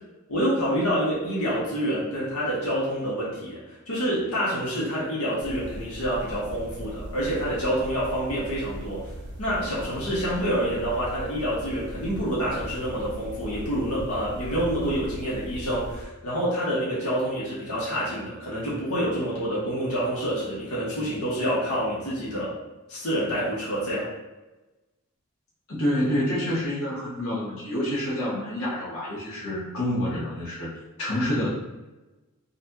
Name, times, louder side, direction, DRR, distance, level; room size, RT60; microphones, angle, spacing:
voice 1, 0.3-9.1 9.4-22.6 22.9-24.0, equal, 90° left, -7 dB, 1.2 m, -27 dB
sound 1, 5.4-16.0, right 1 dB, 50° right, 0.5 m, -39 dB
voice 2, 25.7-30.7 31.0-31.5, left 1 dB, 75° left, -8 dB, 1.2 m, -27 dB
4.1 x 2.4 x 2.7 m, 1.1 s
head